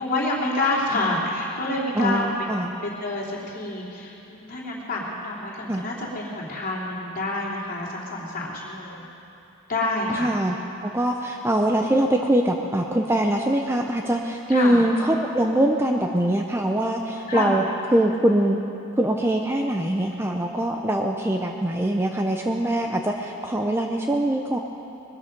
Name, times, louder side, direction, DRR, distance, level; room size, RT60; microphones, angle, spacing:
voice 1, 0.0-2.5 2.8-9.0 9.7-10.4 14.5-14.8 17.3-17.6, left 2 dB, 40° left, -4 dB, 3.0 m, -28 dB
voice 2, 2.0-2.7 5.7-5.8 10.1-10.6 10.8-17.6 17.9-18.6 19.0-24.6, right 1 dB, 10° right, 2 dB, 0.6 m, -23 dB
21.0 x 13.0 x 5.3 m, 2.8 s
head